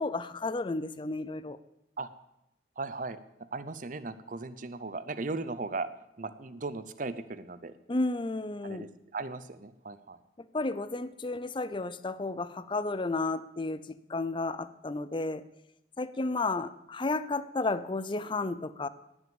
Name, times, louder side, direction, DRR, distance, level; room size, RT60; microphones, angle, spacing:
voice 1, 0.0-1.6 7.9-8.9 10.5-15.4 16.0-18.9, left 2 dB, 30° left, 15 dB, 0.6 m, -32 dB
voice 2, 2.8-3.2 3.5-5.9 6.2-7.7 8.6-10.2, right 3 dB, 50° right, 13 dB, 0.8 m, -37 dB
18.5 x 6.2 x 7.2 m, 0.85 s
head